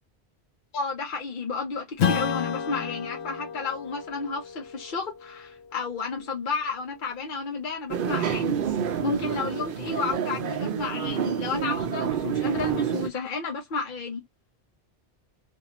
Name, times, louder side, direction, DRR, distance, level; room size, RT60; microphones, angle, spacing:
voice 1, 0.7-8.6 9.0-14.2, left 4 dB, 55° left, 0.8 m, -31 dB
Strum, 2.0-6.9, left 7 dB, 90° left, 1.0 m, -32 dB
sound 1, 7.9-13.1, right 8 dB, 60° right, 0.7 m, -28 dB
2.6 x 2.4 x 2.8 m
omnidirectional pair, 1.1 m